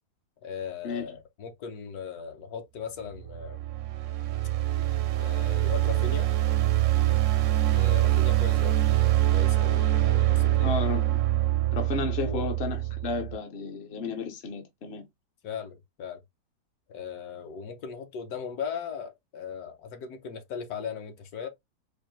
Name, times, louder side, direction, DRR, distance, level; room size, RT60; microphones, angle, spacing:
voice 1, 0.4-3.6 5.1-6.3 7.7-8.8 9.3-10.7 12.2-12.5 15.4-16.2 16.9-21.5, left 6 dB, 70° left, 1.2 m, -38 dB
sound 1, 3.2-13.4, right 15 dB, 70° right, 0.7 m, -24 dB
voice 2, 10.6-11.2 11.7-15.0, left 5 dB, 55° left, 0.7 m, -33 dB
4.4 x 2.5 x 3.1 m
omnidirectional pair, 1.7 m